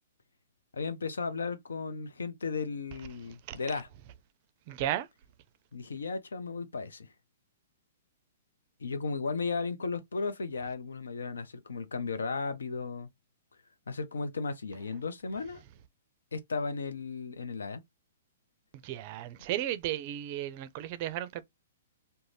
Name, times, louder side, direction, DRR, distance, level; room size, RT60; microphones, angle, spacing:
voice 1, 0.7-3.9 5.7-7.1 8.8-13.1 13.9-15.6 16.3-17.8, left 4 dB, 85° left, 0.5 m, -35 dB
voice 2, 4.7-5.1 18.8-21.4, right 12 dB, 45° right, 0.4 m, -34 dB
2.5 x 2.2 x 3.2 m
hypercardioid pair, 130°, 0 cm